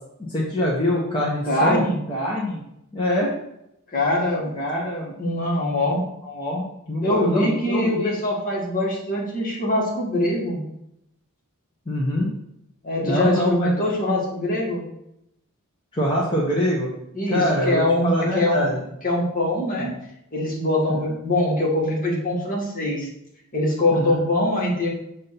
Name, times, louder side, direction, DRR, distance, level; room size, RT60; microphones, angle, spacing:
voice 1, 0.3-1.8 2.1-2.6 2.9-3.3 4.5-5.1 6.2-8.1 11.9-12.3 13.0-13.7 15.9-16.9 17.3-18.8 19.8-19.9 20.9-21.0 23.9-24.2, equal, 25° left, -6 dB, 1.1 m, -24 dB
voice 2, 1.4-2.0 3.9-4.5 5.2-6.0 7.0-10.6 12.8-14.8 17.1-18.6 19.0-19.9 20.3-23.1 23.5-24.9, left 1 dB, 40° left, -3 dB, 1.8 m, -23 dB
7.4 x 2.8 x 5.7 m, 0.80 s
head